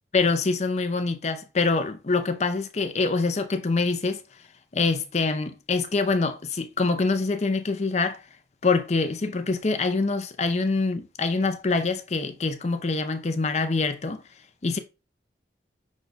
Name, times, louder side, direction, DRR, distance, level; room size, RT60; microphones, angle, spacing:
voice 1, 0.1-4.2 4.7-8.2 8.6-14.2 14.6-14.8, left 3 dB, 40° left, 0.5 m, -25 dB
6.0 x 2.2 x 4.0 m
head